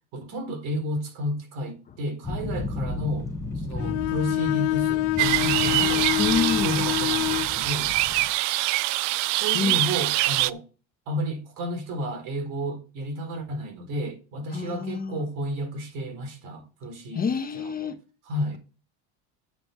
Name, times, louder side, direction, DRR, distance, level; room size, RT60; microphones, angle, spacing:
voice 1, 0.1-3.3 3.6-6.1 6.6-7.9 9.3-10.6 11.1-18.0 18.2-18.6, equal, 60° right, 4.2 m, -32 dB
sound 1, 2.2-8.3, left 3 dB, 10° left, 5.2 m, -34 dB
Bowed string instrument, 3.8-7.6, left 16 dB, 75° left, 0.7 m, -26 dB
sound 2, 5.2-10.5, right 18 dB, 75° right, 0.6 m, -24 dB
voice 2, 6.2-6.7 9.5-9.9 14.5-15.2 17.1-18.0, left 5 dB, 25° left, 1.1 m, -27 dB
9.2 x 7.5 x 4.5 m
supercardioid pair, 120°, 36 cm